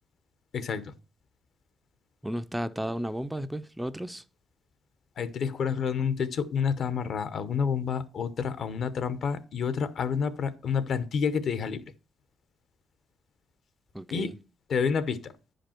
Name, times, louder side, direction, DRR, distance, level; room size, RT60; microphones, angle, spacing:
voice 1, 0.5-0.9 5.2-11.8 14.1-14.3 14.7-15.3, left 6 dB, 60° left, 0.8 m, -29 dB
voice 2, 2.2-4.2 13.9-14.3, equal, 5° right, 0.4 m, -33 dB
10.0 x 5.1 x 4.4 m
cardioid pair, 95°, 0 cm